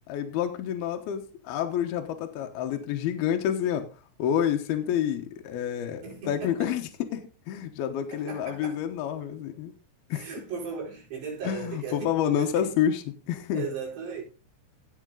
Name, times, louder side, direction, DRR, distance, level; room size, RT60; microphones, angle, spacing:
voice 1, 0.1-3.9 4.2-9.7 10.1-10.3 11.4-13.7, left 9 dB, 75° left, 2.7 m, -28 dB
voice 2, 6.0-6.8 8.1-8.8 10.1-12.7 13.5-14.2, right 5 dB, 75° right, 6.7 m, -37 dB
17.0 x 5.8 x 3.8 m
omnidirectional pair, 5.0 m